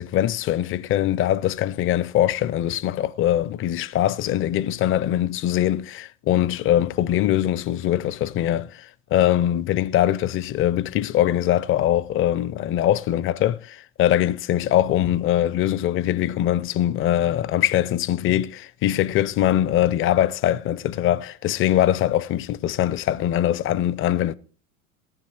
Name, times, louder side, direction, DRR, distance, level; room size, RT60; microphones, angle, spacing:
voice 1, 0.0-24.3, left 12 dB, 30° left, 0.6 m, -22 dB
14.5 x 9.5 x 4.6 m
hypercardioid pair, 85°, 43 cm